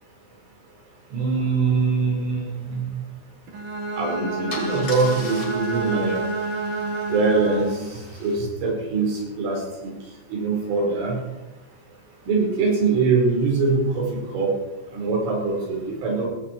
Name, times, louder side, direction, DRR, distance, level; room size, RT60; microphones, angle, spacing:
voice 1, 1.1-3.0 4.0-6.2 7.1-9.9 10.3-11.2 12.3-14.5 14.9-16.3, right 4 dB, 90° right, -1 dB, 7.0 m, -23 dB
Bowed string instrument, 3.5-7.9, right 3 dB, 60° right, 1.4 m, -29 dB
Car / Engine starting / Idling, 3.8-4.0 4.5-8.4, left 2 dB, 30° left, 2.4 m, -40 dB
17.5 x 14.5 x 4.5 m, 1.1 s
omnidirectional pair, 5.5 m